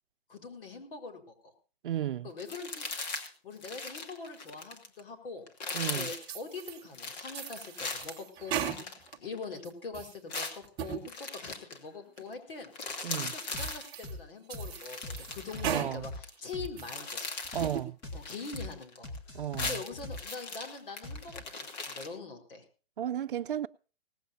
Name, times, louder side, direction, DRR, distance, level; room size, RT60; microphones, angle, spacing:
voice 1, 0.3-1.5 2.2-3.2 3.4-5.5 5.8-12.7 13.2-16.1 16.4-17.2 18.1-19.1 19.6-22.6, left 4 dB, 60° left, 4.6 m, -43 dB
voice 2, 1.8-2.3 5.7-6.1 13.0-13.3 15.6-16.1 17.5-18.0 19.3-19.8 23.0-23.7, right 11 dB, 60° right, 0.7 m, -33 dB
sound 1, 2.4-3.3 3.6-5.0 5.5-6.3 6.9-9.6 10.3-11.8 12.2-12.3 12.6-13.9 14.6-16.3 16.6-17.8 18.1-19.2 19.4-22.1, left 3 dB, 45° left, 2.8 m, -39 dB
sound 2, 6.2-6.8 7.3-9.2 9.6-10.2 10.6-11.0 11.5-11.6 12.2-12.3 12.9-13.0 13.4-14.1 14.5-15.9 16.3-17.0 17.4-17.9, right 9 dB, 15° right, 1.2 m, -38 dB
sound 3, 13.5-13.7 14.0-14.2 14.5-14.7 15.0-16.7 17.0-17.1 17.5-17.7 18.0-18.2 18.5-18.7 19.0-20.6 21.0-21.5, left 2 dB, 20° left, 1.9 m, -41 dB
18.5 x 16.0 x 2.7 m
hypercardioid pair, 170°, 31 cm